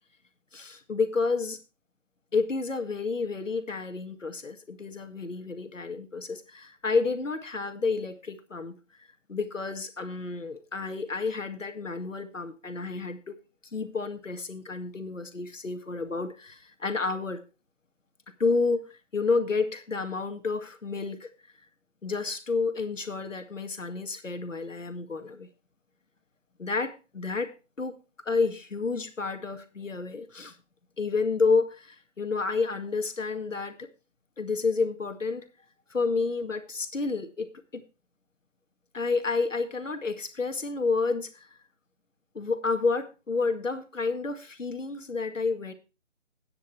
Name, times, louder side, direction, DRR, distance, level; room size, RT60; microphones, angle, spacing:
voice 1, 0.5-1.6 2.3-8.8 9.3-13.4 13.7-17.4 18.4-21.3 22.0-25.5 26.6-28.0 28.3-30.6 31.0-33.9 34.4-35.4 35.9-37.8 38.9-41.5 42.3-45.7, left 4 dB, 85° left, 8 dB, 2.1 m, -30 dB
11.5 x 9.6 x 4.5 m, 0.31 s
figure-of-eight pair, 165°, 37 cm